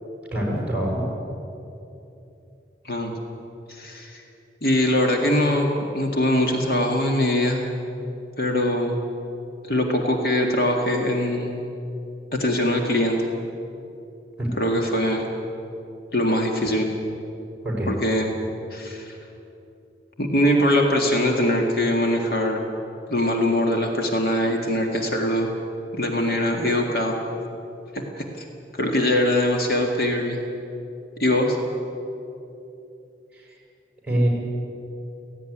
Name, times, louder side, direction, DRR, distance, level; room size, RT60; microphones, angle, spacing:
voice 1, 0.3-1.0 14.4-14.5 17.6-17.9 33.3-33.5 34.0-34.3, right 1 dB, 5° right, -2 dB, 5.6 m, -24 dB
voice 2, 3.7-4.2 4.6-5.7 5.9-7.7 8.4-9.0 9.6-11.6 12.3-13.2 14.6-15.3 16.1-16.9 17.9-18.3 18.7-19.2 20.2-22.6 23.1-25.5 25.9-27.2 27.9-28.0 28.3-28.5 28.7-30.4 31.2-31.6, left 1 dB, 55° left, 1 dB, 2.0 m, -22 dB
17.0 x 15.5 x 9.9 m, 2.9 s
head